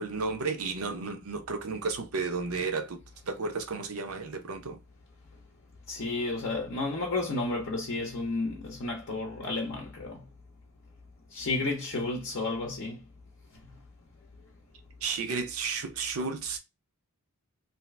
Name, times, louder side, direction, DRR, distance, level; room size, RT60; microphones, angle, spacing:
voice 1, 0.0-3.0 3.3-4.8 15.0-16.6, right 4 dB, 75° right, 0.7 m, -33 dB
voice 2, 5.9-10.2 11.3-13.0, left 2 dB, 55° left, 0.6 m, -32 dB
2.7 x 2.4 x 3.2 m
head